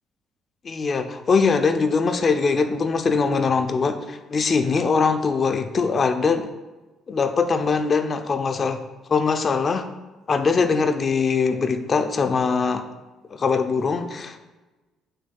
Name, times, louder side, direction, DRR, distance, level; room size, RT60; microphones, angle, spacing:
voice 1, 0.6-6.5 7.1-8.8 9.1-9.9 10.3-12.8 13.3-14.4, left 5 dB, 25° left, 7 dB, 0.4 m, -22 dB
8.1 x 6.2 x 2.3 m, 1.1 s
cardioid pair, 165°, 0 cm